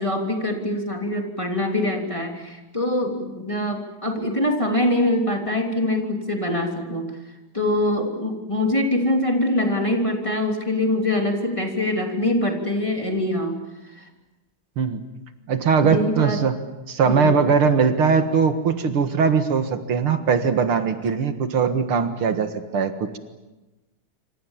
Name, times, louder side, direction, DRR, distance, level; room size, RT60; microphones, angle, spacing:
voice 1, 0.0-7.1 7.5-13.6 14.0-14.1 15.8-16.5 17.0-17.3, left 1 dB, 15° left, 2 dB, 3.2 m, -24 dB
voice 2, 15.5-16.6 16.9-23.2, right 6 dB, 75° right, 8 dB, 2.5 m, -20 dB
27.0 x 26.5 x 7.4 m, 1.1 s
omnidirectional pair, 2.4 m